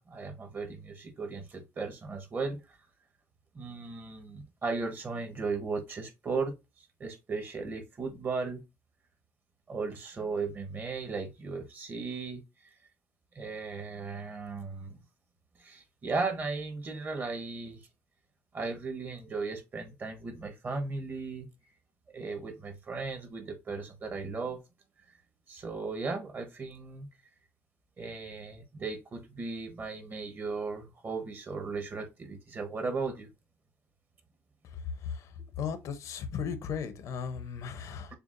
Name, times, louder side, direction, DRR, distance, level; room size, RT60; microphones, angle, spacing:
voice 1, 0.0-2.6 3.5-6.5 7.0-8.6 9.7-12.4 13.3-15.0 15.6-17.8 18.5-21.5 22.1-24.6 25.5-27.1 28.0-33.3, right 4 dB, 35° right, 1.1 m, -36 dB
voice 2, 35.6-38.1, left 7 dB, 75° left, 0.8 m, -36 dB
6.7 x 2.4 x 2.5 m
cardioid pair, 125°, 6 cm